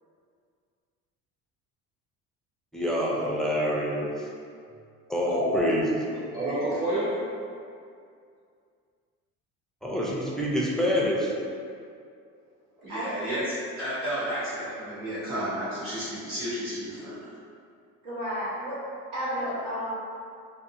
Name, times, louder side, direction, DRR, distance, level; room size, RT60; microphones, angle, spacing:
voice 1, 2.7-4.3 5.1-6.4 9.8-11.3, equal, ahead, -4 dB, 0.4 m, -27 dB
voice 2, 5.2-5.8 6.3-7.2 12.8-17.3, right 1 dB, 40° right, -11 dB, 1.4 m, -31 dB
voice 3, 18.0-18.8 19.1-19.9, equal, 65° right, -10 dB, 1.3 m, -31 dB
2.7 x 2.6 x 2.5 m, 2.3 s
supercardioid pair, 90°, 35 cm